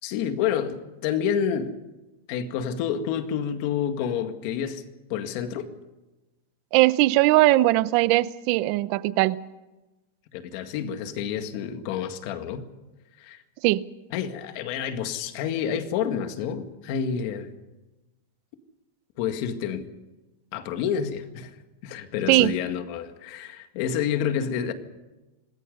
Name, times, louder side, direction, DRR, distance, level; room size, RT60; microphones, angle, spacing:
voice 1, 0.0-1.8 2.3-4.8 5.1-5.7 10.3-12.7 13.2-13.4 14.1-17.5 19.2-19.8 20.5-24.7, left 8 dB, 35° left, 1.9 m, -29 dB
voice 2, 6.7-9.4 13.6-13.8 22.3-22.5, right 18 dB, 35° right, 0.7 m, -20 dB
26.5 x 20.0 x 5.4 m
supercardioid pair, 180°, 0 cm